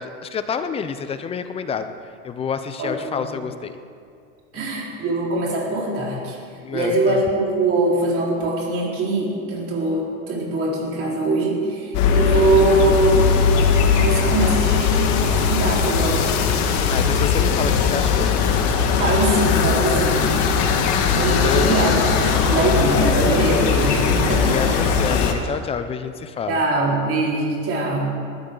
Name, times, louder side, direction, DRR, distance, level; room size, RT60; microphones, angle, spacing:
voice 1, 0.0-1.9 2.2-3.7 4.5-4.7 6.6-7.2 16.9-18.7 19.0-19.4 20.9-21.8 24.4-26.6, left 6 dB, 15° left, 10 dB, 0.4 m, -28 dB
voice 2, 2.8-3.3 4.5-6.4 6.7-13.3 13.9-16.3 19.0-20.3 21.1-24.8 26.5-28.1, right 2 dB, 35° right, -4 dB, 4.4 m, -22 dB
sound 1, 11.9-25.3, left 6 dB, 45° left, 1.5 m, -19 dB
sound 2, 21.2-25.0, equal, 5° right, 4.8 m, -31 dB
20.5 x 13.0 x 3.9 m, 2.3 s
supercardioid pair, 140°, 40 cm